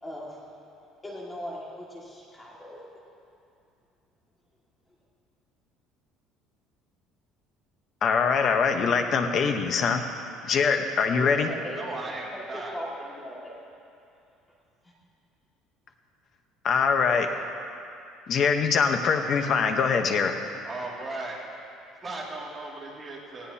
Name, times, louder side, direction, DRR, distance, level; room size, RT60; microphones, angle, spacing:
voice 1, 0.0-0.4 1.0-3.0 11.1-11.8 12.3-13.6 14.8-14.9, equal, 10° left, -4 dB, 2.1 m, -39 dB
voice 2, 8.0-10.0 10.5-11.5 16.6-17.3 18.3-20.3, left 5 dB, 40° left, 5 dB, 1.0 m, -23 dB
voice 3, 11.6-12.8 20.6-21.4 22.0-23.5, right 2 dB, 20° right, -4 dB, 2.6 m, -37 dB
19.0 x 16.0 x 2.9 m, 2.6 s
cardioid pair, 150°, 0 cm